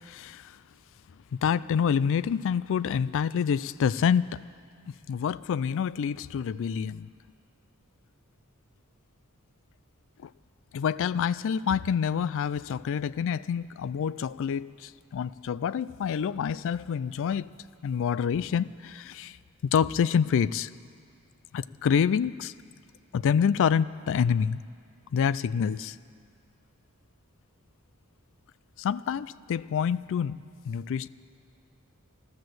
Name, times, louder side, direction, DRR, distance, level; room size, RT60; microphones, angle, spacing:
voice 1, 0.1-0.5 1.3-4.4 5.1-7.1 10.2-10.3 10.7-17.5 17.8-19.4 19.7-20.7 21.5-22.5 23.1-24.6 25.1-26.0 28.8-30.4 30.7-31.1, left 7 dB, 60° left, 18 dB, 0.3 m, -27 dB
13.5 x 13.0 x 7.7 m, 2.2 s
head